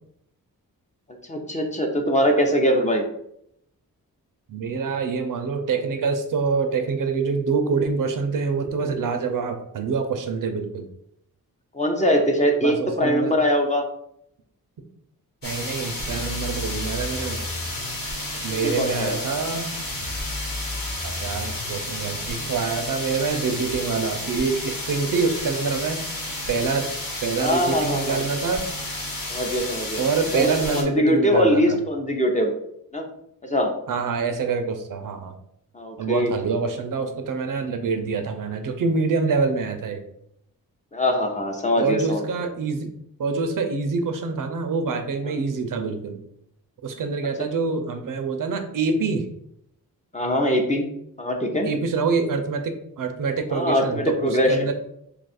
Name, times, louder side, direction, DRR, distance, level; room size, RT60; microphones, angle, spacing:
voice 1, 1.3-3.1 11.7-13.9 18.6-19.2 27.4-28.2 29.3-30.0 30.3-32.5 32.9-33.1 33.4-33.7 35.7-36.3 40.9-42.2 45.3-45.4 50.1-50.9 51.2-51.7 53.5-54.7, equal, 20° left, 3 dB, 0.6 m, -22 dB
voice 2, 4.5-10.9 12.6-13.3 15.4-17.5 18.4-19.7 21.0-26.0 26.5-26.9 27.2-28.6 30.0-31.8 33.9-35.3 36.0-40.0 41.8-42.9 43.2-46.2 46.8-49.3 51.6-54.7, right 4 dB, 65° right, 6 dB, 0.5 m, -26 dB
sound 1, 15.4-30.8, left 1 dB, 65° left, 1.2 m, -32 dB
sound 2, 16.1-18.0 19.9-21.9 23.7-23.8, left 2 dB, 50° left, 0.8 m, -35 dB
2.7 x 2.4 x 4.1 m, 0.74 s
cardioid pair, 70°, 35 cm